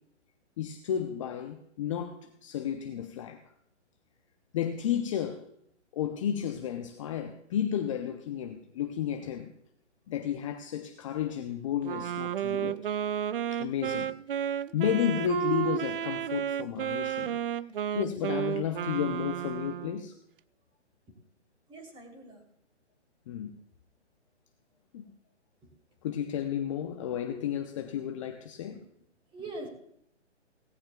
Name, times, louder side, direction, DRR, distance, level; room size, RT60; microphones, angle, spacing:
voice 1, 0.6-3.4 4.5-5.5 5.9-9.5 10.1-12.9 13.5-14.1 14.5-17.4 17.9-20.2 23.3-23.6 24.9-25.1 26.0-28.8, left 9 dB, 25° left, 0.7 m, -32 dB
Wind instrument woodwind instrument, 11.8-20.1, right 10 dB, 50° right, 0.4 m, -32 dB
voice 2, 21.7-22.4 25.6-25.7 28.7-28.8 29.3-29.7, right 2 dB, 15° right, 3.3 m, -43 dB
18.0 x 16.5 x 2.3 m
hypercardioid pair, 140°, 36 cm